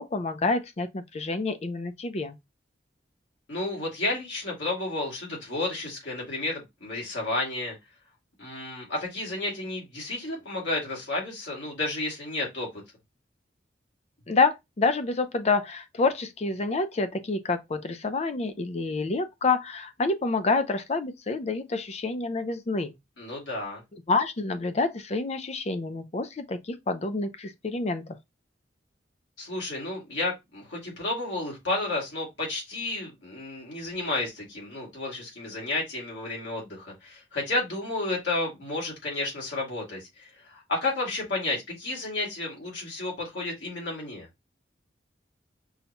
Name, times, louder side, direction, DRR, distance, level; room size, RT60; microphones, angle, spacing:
voice 1, 0.0-2.4 14.3-22.9 24.1-28.2, left 3 dB, 35° left, 0.5 m, -28 dB
voice 2, 3.5-7.8 8.4-12.7 23.2-23.8 29.4-44.3, left 2 dB, 90° left, 2.2 m, -32 dB
5.5 x 2.2 x 2.9 m
head